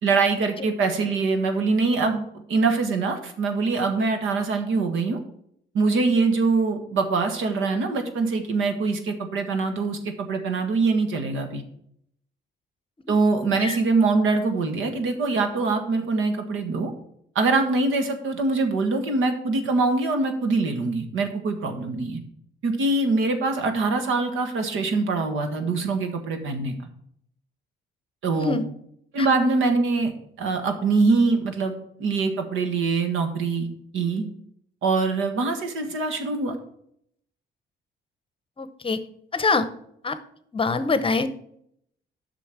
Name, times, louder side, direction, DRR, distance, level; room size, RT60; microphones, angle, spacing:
voice 1, 0.0-5.2 5.7-11.6 13.1-16.9 17.3-22.2 22.6-26.7 28.2-28.6 29.1-30.1 30.4-31.7 32.0-33.7 33.9-34.2 34.8-36.5, right 3 dB, 80° right, 6 dB, 1.6 m, -23 dB
voice 2, 28.3-28.6 29.2-29.3 38.6-39.0 39.3-39.7 40.0-40.2 40.5-41.3, left 3 dB, 25° left, 12 dB, 0.8 m, -24 dB
8.4 x 6.1 x 6.0 m, 0.70 s
cardioid pair, 105°, 20 cm